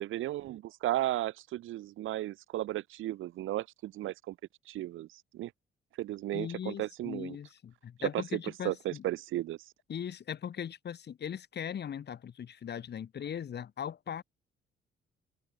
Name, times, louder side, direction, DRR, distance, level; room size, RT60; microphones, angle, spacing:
voice 1, 0.0-4.3 4.7-5.5 6.0-7.4 8.0-8.4 8.6-9.6, right 14 dB, 85° right, 2.6 m, -34 dB
voice 2, 6.3-9.0 9.9-14.2, left 8 dB, 55° left, 6.2 m, -39 dB
cardioid pair, 90°, 20 cm